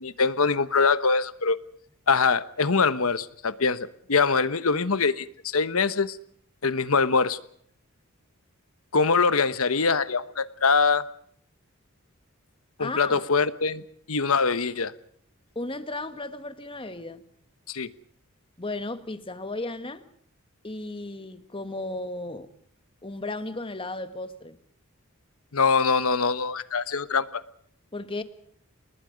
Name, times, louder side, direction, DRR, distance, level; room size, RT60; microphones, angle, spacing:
voice 1, 0.0-1.6 2.1-6.2 6.6-7.4 8.9-11.0 12.8-13.8 14.1-14.9 17.7-17.9 25.5-27.4, left 4 dB, 80° left, 1.1 m, -23 dB
voice 2, 12.8-13.2 15.5-17.2 18.6-20.0 20.6-22.5 23.0-24.6 27.9-28.2, left 2 dB, 25° left, 1.5 m, -34 dB
29.0 x 20.0 x 5.2 m
head